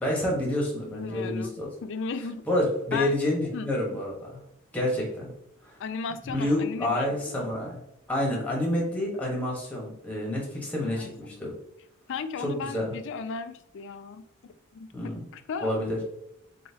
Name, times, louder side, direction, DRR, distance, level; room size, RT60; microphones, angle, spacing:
voice 1, 0.0-1.7 2.5-4.4 4.7-5.3 5.6-5.8 6.3-7.8 8.1-11.5 12.4-12.9 14.9-15.2 15.6-16.0, left 1 dB, 5° left, -2 dB, 1.1 m, -28 dB
voice 2, 0.9-2.4 2.9-3.2 3.5-3.7 5.8-7.5 10.8-11.4 12.1-14.2 14.7-15.7, left 5 dB, 55° left, 11 dB, 0.3 m, -36 dB
4.0 x 3.9 x 2.8 m, 0.83 s
head